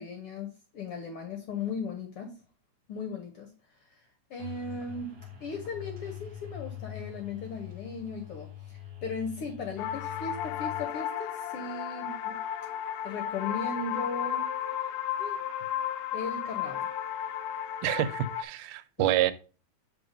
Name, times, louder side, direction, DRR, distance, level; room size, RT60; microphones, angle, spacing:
voice 1, 0.0-2.4 2.9-3.5 4.3-12.4 13.0-14.5 15.2-15.4 16.1-16.9 19.0-19.2, left 4 dB, 70° left, 1.4 m, -37 dB
sound 1, 4.4-10.8, left 11 dB, 40° right, 1.5 m, -44 dB
sound 2, 9.8-18.4, left 10 dB, 85° left, 1.5 m, -34 dB
voice 2, 17.8-19.3, right 12 dB, 85° right, 2.1 m, -27 dB
6.9 x 3.9 x 4.9 m
omnidirectional pair, 3.6 m